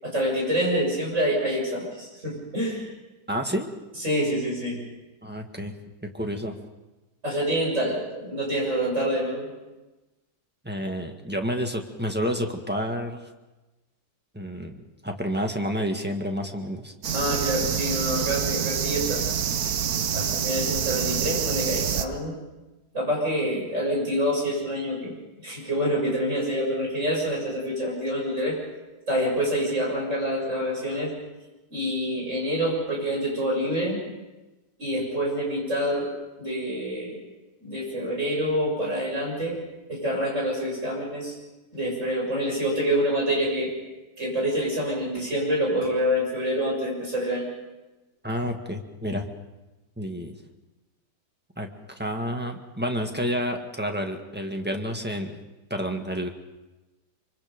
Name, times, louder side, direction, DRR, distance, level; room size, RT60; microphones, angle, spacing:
voice 1, 0.0-2.9 4.0-4.8 7.2-9.5 17.1-19.2 20.1-22.4 22.9-25.1 25.4-28.6 29.1-31.1 31.7-34.0 34.8-36.1 36.4-37.2 37.6-39.6 39.9-41.4 41.7-43.7 44.2-47.5, equal, 45° right, -2 dB, 7.5 m, -26 dB
voice 2, 3.3-3.7 5.2-5.7 6.0-6.5 10.6-13.3 14.3-16.9 48.2-49.3 50.0-50.4 51.6-51.7 52.0-55.4 55.7-56.3, equal, 5° right, 3 dB, 1.6 m, -29 dB
sound 1, 17.0-22.1, right 8 dB, 65° right, 1.4 m, -27 dB
24.5 x 24.5 x 5.3 m, 1.1 s
omnidirectional pair, 1.8 m